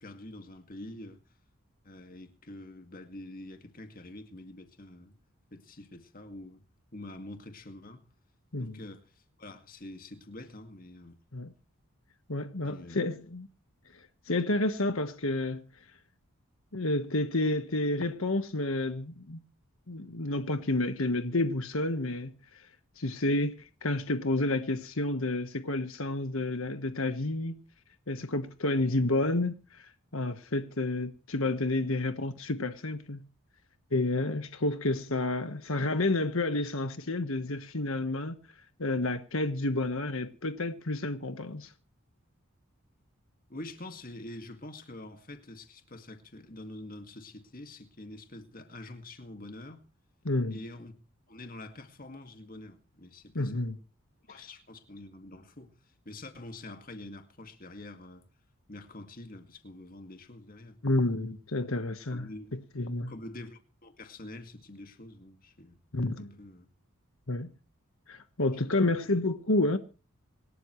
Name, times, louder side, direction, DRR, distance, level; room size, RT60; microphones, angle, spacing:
voice 1, 0.0-1.2 1.8-5.1 5.5-6.6 6.9-8.0 8.6-11.2 12.6-13.0 43.5-49.9 50.5-50.9 51.3-53.7 54.3-58.3 58.7-60.8 62.1-62.6 63.1-65.8 66.2-66.7 68.8-68.9, left 1 dB, 40° left, 2.1 m, -46 dB
voice 2, 12.3-13.5 13.9-15.6 16.7-19.4 19.9-22.7 23.0-27.6 28.1-33.3 33.9-38.4 38.8-41.7 50.2-50.6 53.3-53.8 60.8-63.1 65.9-66.3 67.3-67.5 68.1-69.8, left 2 dB, 70° left, 1.4 m, -30 dB
26.5 x 12.5 x 3.2 m
head